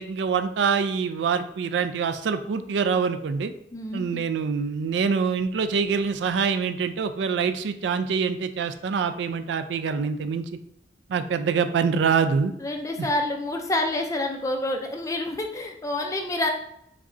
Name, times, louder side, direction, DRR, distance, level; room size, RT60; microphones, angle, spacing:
voice 1, 0.0-3.5 3.9-10.4 11.1-12.5 13.0-13.1, right 6 dB, 80° right, 10 dB, 0.3 m, -25 dB
voice 2, 3.7-4.0 12.6-16.5, left 1 dB, 20° left, 3 dB, 0.3 m, -28 dB
4.1 x 3.5 x 2.5 m, 0.75 s
head